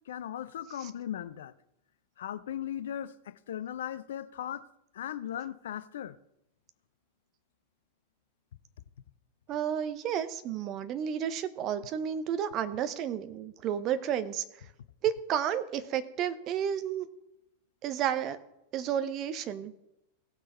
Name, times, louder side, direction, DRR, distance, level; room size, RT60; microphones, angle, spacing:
voice 1, 0.1-1.5 2.2-4.7 4.9-6.2, left 10 dB, 60° left, 0.5 m, -38 dB
voice 2, 9.5-14.4 15.0-17.1 17.8-18.4 18.7-19.7, right 9 dB, 35° right, 0.8 m, -31 dB
16.5 x 6.4 x 4.3 m
figure-of-eight pair, 90°, 0 cm